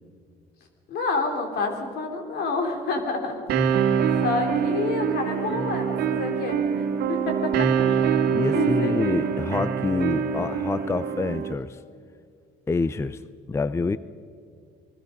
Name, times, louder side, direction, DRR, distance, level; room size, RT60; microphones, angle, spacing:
voice 1, 0.9-3.9 4.2-8.2 8.5-9.0, left 3 dB, 75° left, 4 dB, 3.8 m, -29 dB
sound 1, 3.5-11.5, right 7 dB, 75° right, 1.9 m, -24 dB
voice 2, 8.3-11.8 12.7-13.2 13.5-14.0, left 3 dB, 15° left, 15 dB, 0.5 m, -27 dB
29.5 x 20.0 x 5.4 m, 2.2 s
cardioid pair, 110°, 17 cm